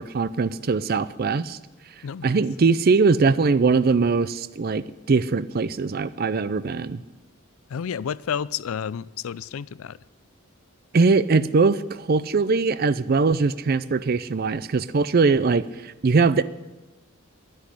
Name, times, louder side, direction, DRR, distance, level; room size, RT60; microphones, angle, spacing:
voice 1, 0.0-1.6 2.2-7.0 10.9-16.4, right 4 dB, 45° right, 15 dB, 0.5 m, -21 dB
voice 2, 2.0-2.4 7.7-10.0, left 7 dB, 80° left, 20 dB, 0.4 m, -31 dB
10.5 x 10.0 x 9.8 m, 1.1 s
head